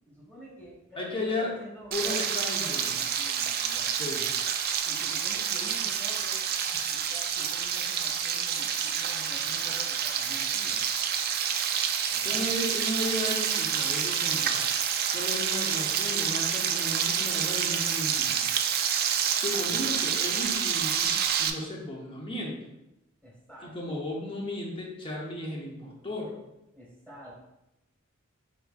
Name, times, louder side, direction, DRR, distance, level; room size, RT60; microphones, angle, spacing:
voice 1, 0.1-3.9 4.8-6.4 6.7-10.8 12.1-12.5 19.7-19.9 23.2-24.0 26.7-27.5, equal, 5° left, -5 dB, 1.4 m, -47 dB
voice 2, 1.0-1.5 1.9-2.9 4.0-4.2 12.2-14.7 15.1-18.4 19.3-21.1 21.4-22.6 23.6-26.4, left 1 dB, 25° left, -2 dB, 0.9 m, -34 dB
Frying (food), 1.9-21.5, right 8 dB, 50° right, 0.3 m, -28 dB
4.5 x 4.3 x 2.4 m, 0.90 s
head